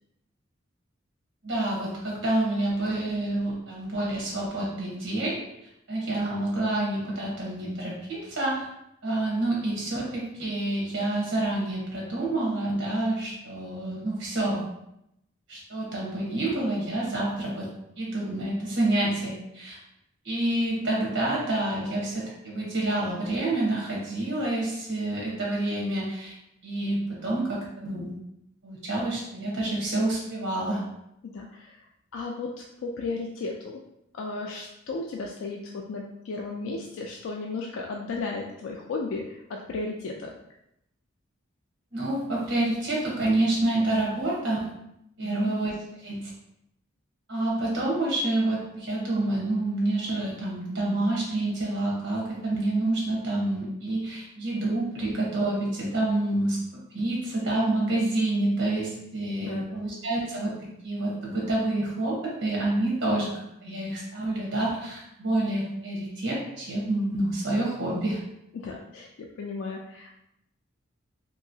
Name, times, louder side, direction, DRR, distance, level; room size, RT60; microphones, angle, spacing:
voice 1, 1.4-5.4 5.9-8.7 9.0-14.7 15.5-19.8 20.2-26.3 26.6-28.2 28.6-30.8 41.9-44.7 45.2-46.3 47.3-60.5 60.8-63.3 63.6-68.2, right 2 dB, 75° right, -4 dB, 1.1 m, -28 dB
voice 2, 31.2-31.8 32.1-32.5 32.8-33.8 34.1-40.3 45.2-45.5 59.4-59.8 68.5-70.1, left 3 dB, 90° left, 0 dB, 0.3 m, -34 dB
3.0 x 2.8 x 2.7 m, 0.82 s
head